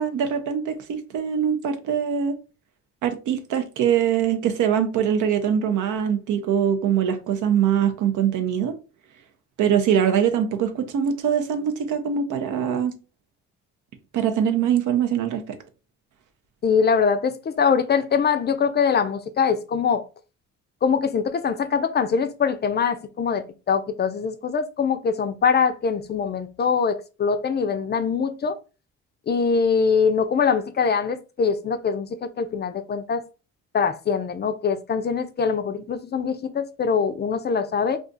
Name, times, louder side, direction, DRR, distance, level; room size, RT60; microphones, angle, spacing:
voice 1, 0.0-2.4 3.0-8.8 9.6-12.9 14.1-15.4, right 8 dB, 75° right, 0.6 m, -23 dB
voice 2, 16.6-20.0 20.8-28.5 29.3-33.2 33.7-38.0, left 6 dB, 35° left, 0.4 m, -23 dB
2.4 x 2.4 x 3.8 m
cardioid pair, 90°, 30 cm